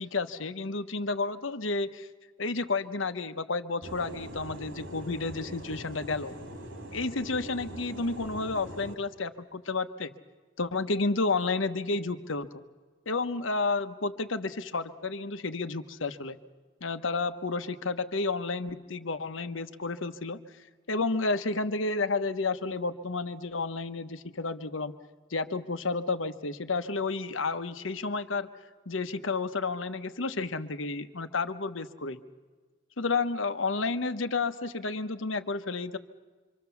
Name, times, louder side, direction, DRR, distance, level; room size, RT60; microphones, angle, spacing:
voice 1, 0.0-2.1 2.4-6.3 6.9-10.1 10.6-12.6 13.1-16.4 16.8-20.4 20.9-24.9 25.3-28.5 28.9-32.2 33.0-36.0, left 3 dB, 80° left, 9 dB, 1.2 m, -31 dB
sound 1, 3.8-8.9, equal, 85° right, 3.1 m, -42 dB
26.0 x 25.5 x 7.1 m, 1.4 s
head